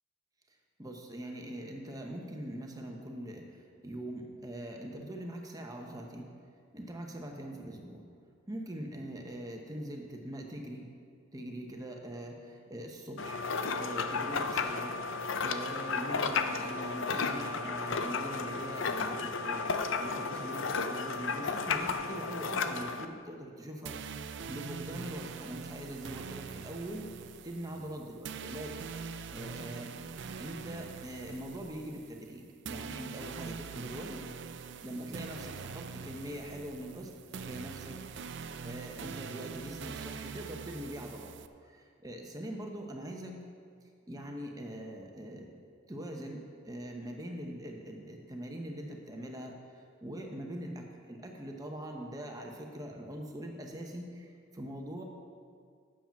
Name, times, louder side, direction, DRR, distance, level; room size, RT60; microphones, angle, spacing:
voice 1, 0.8-6.3 6.7-8.0 8.5-10.9 11.3-13.4 13.7-15.0 15.4-29.0 29.3-29.9 30.4-34.2 34.8-37.2 37.4-38.0 38.6-41.4 41.6-43.4 44.1-45.5 45.9-49.6 50.0-55.0, right 1 dB, 15° right, 1 dB, 1.0 m, -42 dB
sound 1, 13.2-23.1, left 4 dB, 65° left, 0.5 m, -33 dB
sound 2, 23.9-41.5, right 5 dB, 55° right, 0.4 m, -43 dB
9.9 x 7.5 x 5.8 m, 2.2 s
head